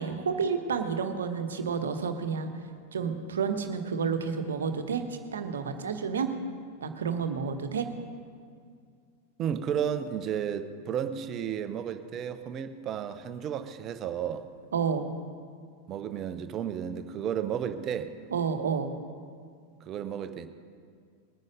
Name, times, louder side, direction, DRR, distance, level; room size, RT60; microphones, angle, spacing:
voice 1, 0.0-2.5 2.9-5.0 5.3-6.3 6.8-7.9 14.7-15.1 18.3-18.9, right 6 dB, 65° right, 7 dB, 1.2 m, -30 dB
voice 2, 9.4-14.5 15.9-18.1 19.9-20.5, right 8 dB, 30° right, 10 dB, 0.9 m, -33 dB
21.0 x 9.5 x 5.3 m, 2.2 s
figure-of-eight pair, 90°, 0 cm